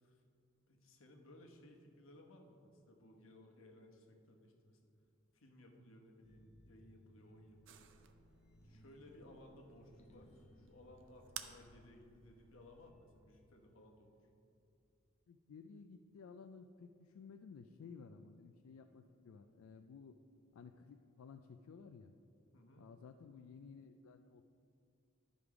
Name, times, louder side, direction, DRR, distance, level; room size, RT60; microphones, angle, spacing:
voice 1, 0.7-4.9 5.3-7.9 8.6-14.3 22.5-22.8, left 1 dB, 70° left, 2 dB, 1.1 m, -60 dB
sound 1, 6.2-14.3, equal, 30° left, 0.6 m, -66 dB
sound 2, 7.7-12.9, right 9 dB, 60° right, 0.5 m, -56 dB
voice 2, 15.3-20.2 20.5-22.1 22.8-24.5, left 5 dB, 85° left, 7 dB, 0.4 m, -55 dB
11.5 x 5.1 x 4.8 m, 2.5 s
head